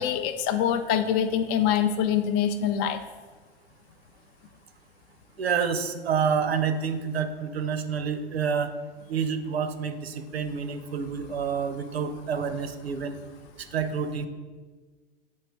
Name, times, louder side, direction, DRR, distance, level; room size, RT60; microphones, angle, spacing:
voice 1, 0.0-3.0, left 9 dB, 30° left, 8 dB, 0.4 m, -24 dB
voice 2, 5.4-8.7 9.1-13.2 13.6-14.3, right 6 dB, 80° right, 10 dB, 0.6 m, -28 dB
7.3 x 4.4 x 3.1 m, 1.4 s
figure-of-eight pair, 95°, 31 cm